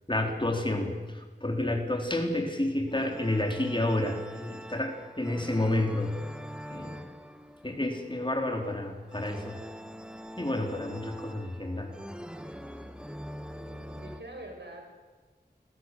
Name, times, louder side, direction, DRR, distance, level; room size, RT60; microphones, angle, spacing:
voice 1, 0.1-6.2 6.7-7.0 7.6-9.6 10.4-11.9, left 1 dB, 25° left, 2 dB, 4.4 m, -30 dB
sound 1, 2.9-14.2, equal, 5° right, 2.4 m, -44 dB
voice 2, 13.5-15.0, right 1 dB, 75° right, 2 dB, 7.0 m, -45 dB
29.0 x 21.5 x 7.9 m, 1.3 s
wide cardioid pair, 45°, 18 cm